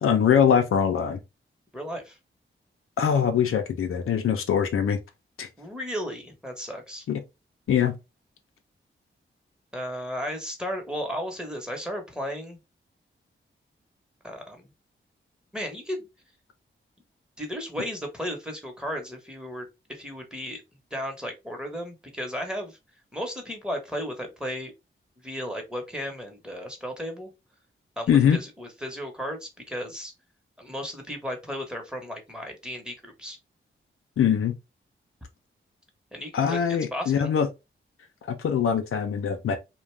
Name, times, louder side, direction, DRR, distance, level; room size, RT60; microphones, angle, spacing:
voice 1, 0.0-1.2 3.0-5.0 5.4-5.5 7.1-7.2 7.7-7.9 28.1-28.4 34.2-34.5 36.3-37.5 38.3-39.6, left 8 dB, 90° left, 0.5 m, -22 dB
voice 2, 1.7-2.2 5.6-7.1 9.7-12.6 14.2-14.7 15.5-16.1 17.4-20.6 20.9-22.8 23.1-24.7 25.2-27.3 28.0-30.1 30.6-33.4 36.1-36.6 36.9-37.3, equal, 5° right, 1.0 m, -34 dB
2.5 x 2.2 x 3.1 m
cardioid pair, 65°, 21 cm